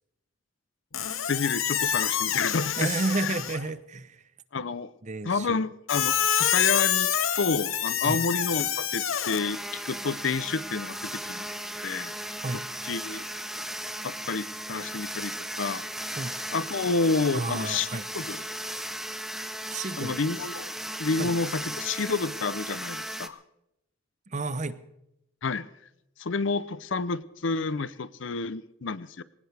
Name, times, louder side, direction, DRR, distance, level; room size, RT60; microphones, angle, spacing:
Squeak, 0.9-3.7 5.9-9.4, left 9 dB, 85° left, 1.1 m, -27 dB
voice 1, 1.3-2.9 3.2-3.3 4.5-4.9 5.2-7.1 7.4-12.1 12.9-13.3 14.0-15.8 16.5-17.9 18.1-18.4 20.0-20.7 21.0-23.4 25.4-25.7 26.2-29.2, left 4 dB, 65° left, 17 dB, 0.6 m, -29 dB
voice 2, 2.8-4.2 5.0-5.6 8.0-8.3 12.4-12.6 16.2-16.3 17.3-18.1 19.7-20.2 21.2-21.3 24.3-24.8, right 3 dB, 35° right, 14 dB, 0.7 m, -31 dB
sound 1, 9.4-23.3, right 1 dB, ahead, 0.7 m, -36 dB
20.5 x 18.5 x 3.4 m, 0.84 s
head